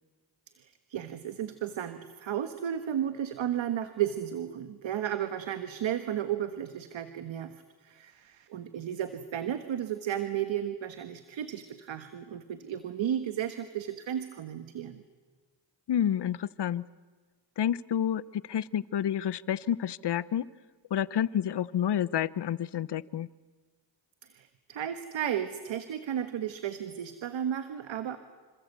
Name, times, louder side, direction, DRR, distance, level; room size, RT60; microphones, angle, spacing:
voice 1, 0.6-15.0 24.2-28.2, right 10 dB, 85° right, 9 dB, 1.4 m, -34 dB
voice 2, 15.9-16.8 17.6-20.4 20.9-23.3, left 10 dB, 65° left, 19 dB, 0.9 m, -29 dB
27.5 x 26.5 x 8.3 m, 1.4 s
cardioid pair, 75°, 44 cm